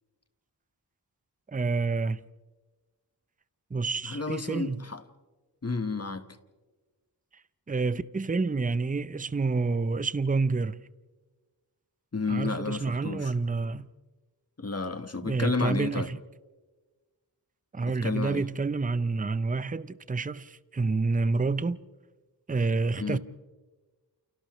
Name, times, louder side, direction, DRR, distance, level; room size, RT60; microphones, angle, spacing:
voice 1, 1.5-2.2 3.7-4.9 7.7-10.8 12.3-13.9 15.2-16.2 17.7-21.8 22.5-23.2, right 3 dB, 20° right, 0.6 m, -28 dB
voice 2, 4.0-5.0 5.6-6.2 12.1-13.3 14.6-16.1 17.9-18.5 23.0-23.2, left 4 dB, 35° left, 1.3 m, -31 dB
30.0 x 29.0 x 3.1 m
wide cardioid pair, 70°, 42 cm